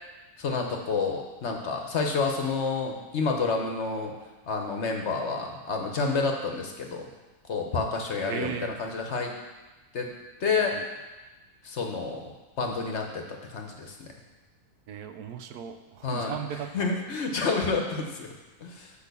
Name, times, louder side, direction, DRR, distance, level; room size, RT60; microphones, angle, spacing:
voice 1, 0.4-4.1 4.5-7.1 7.5-8.5 8.8-9.3 9.9-10.1 10.4-10.8 11.6-12.3 12.6-13.2 13.5-14.1 16.0-16.3 16.7-18.3 18.6-18.9, left 4 dB, 55° left, 2 dB, 1.0 m, -29 dB
voice 2, 8.2-8.8 10.7-10.9 14.9-16.9, right 8 dB, 80° right, 8 dB, 1.1 m, -37 dB
6.4 x 5.2 x 6.7 m, 1.2 s
omnidirectional pair, 1.6 m